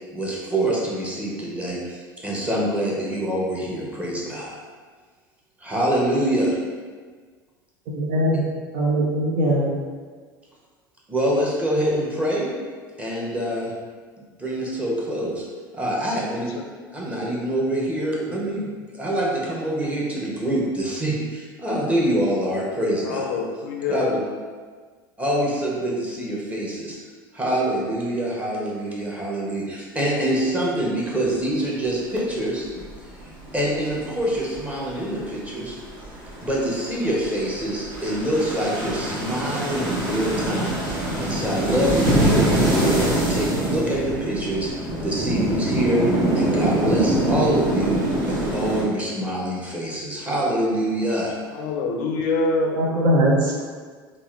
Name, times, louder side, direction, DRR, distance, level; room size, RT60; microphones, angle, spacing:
voice 1, 0.1-4.5 5.6-6.6 11.1-12.5 13.0-13.7 14.4-15.4 15.7-16.5 16.9-18.7 18.9-23.3 23.9-24.2 25.2-27.0 27.3-32.6 33.5-35.7 36.4-44.7 45.0-46.0 46.3-51.3, right 1 dB, 10° right, -5 dB, 1.0 m, -25 dB
voice 2, 7.9-8.4 8.7-9.8 52.8-53.3, equal, 60° right, -2 dB, 0.7 m, -21 dB
voice 3, 23.0-24.1 51.5-52.8, left 3 dB, 60° left, 2 dB, 0.5 m, -25 dB
sound 1, 31.0-31.7 32.6-35.0 35.4-48.8, right 1 dB, 40° right, 1.4 m, -24 dB
3.5 x 2.5 x 3.2 m, 1.5 s
figure-of-eight pair, 70°, 12 cm